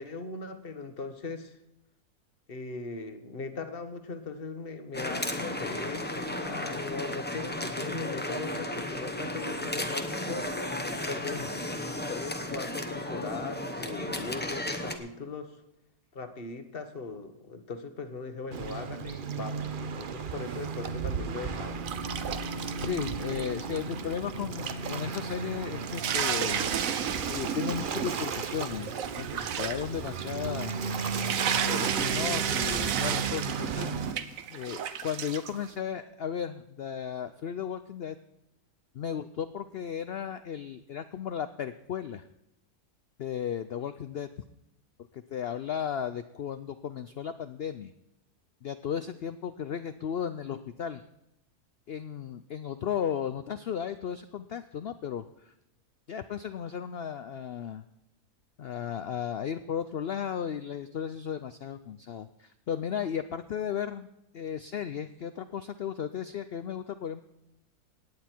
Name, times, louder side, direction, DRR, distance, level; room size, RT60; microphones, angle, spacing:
voice 1, 0.0-1.6 2.5-11.4 12.1-15.6 16.1-21.8, left 3 dB, 40° left, 9 dB, 1.2 m, -39 dB
sound 1, 4.9-15.0, left 1 dB, 10° left, 0.8 m, -34 dB
Waves surf, 18.5-34.1, right 5 dB, 45° right, 0.7 m, -35 dB
sound 2, 21.8-24.4 24.7-24.8 25.3-25.4 25.7-35.7, right 8 dB, 65° right, 1.2 m, -33 dB
voice 2, 22.8-26.7 27.3-31.0 31.6-33.9 34.5-38.2 38.9-42.2 43.2-44.3 45.1-47.9 48.6-51.0 51.9-55.5 56.1-57.8 58.6-64.1 64.3-67.2, left 8 dB, 65° left, 11 dB, 0.6 m, -35 dB
17.5 x 9.6 x 4.5 m, 0.88 s
omnidirectional pair, 1.6 m